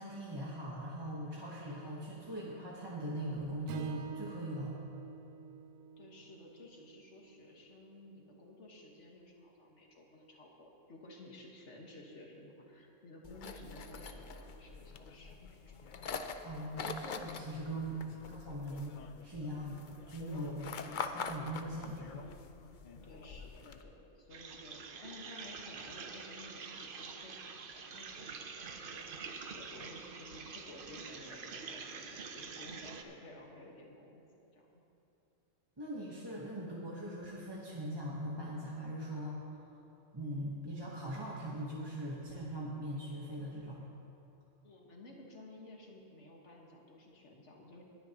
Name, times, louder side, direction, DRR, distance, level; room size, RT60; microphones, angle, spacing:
voice 1, 0.0-4.8 16.4-18.0 18.3-19.0 19.2-22.2 35.8-39.8 40.1-43.8, right 1 dB, 20° right, -5 dB, 1.0 m, -41 dB
Strum, 3.7-8.0, right 5 dB, 80° right, 1.1 m, -48 dB
voice 2, 6.0-15.7 17.9-18.1 20.3-20.9 23.0-34.2 34.5-34.7 44.6-47.8, left 1 dB, 55° left, -1 dB, 1.8 m, -54 dB
sound 1, 13.2-23.8, left 5 dB, 70° left, 0.4 m, -45 dB
sound 2, 24.3-33.0, right 5 dB, 50° right, 0.7 m, -46 dB
20.5 x 9.9 x 2.9 m, 2.9 s
omnidirectional pair, 1.5 m